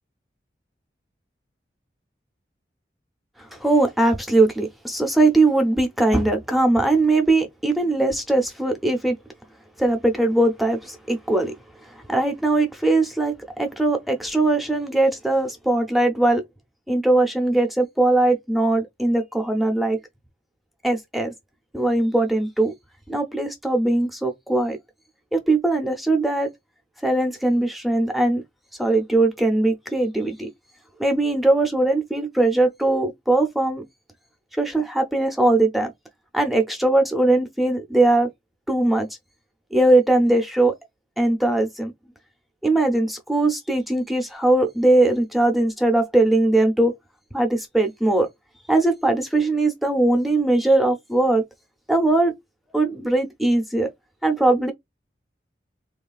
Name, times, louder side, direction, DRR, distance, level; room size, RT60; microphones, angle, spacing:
voice 1, 3.6-9.2 9.8-11.5 12.1-16.4 16.9-20.0 20.8-21.3 21.7-22.7 23.1-24.8 25.3-26.5 27.0-28.4 28.8-30.5 31.0-33.8 34.6-35.9 36.3-38.3 38.7-39.1 39.7-40.7 41.2-41.9 42.6-47.0 47.3-48.3 48.7-51.4 51.9-52.3 52.7-53.9 54.2-54.7, right 2 dB, ahead, 0.4 m, -20 dB
3.1 x 2.3 x 2.3 m
head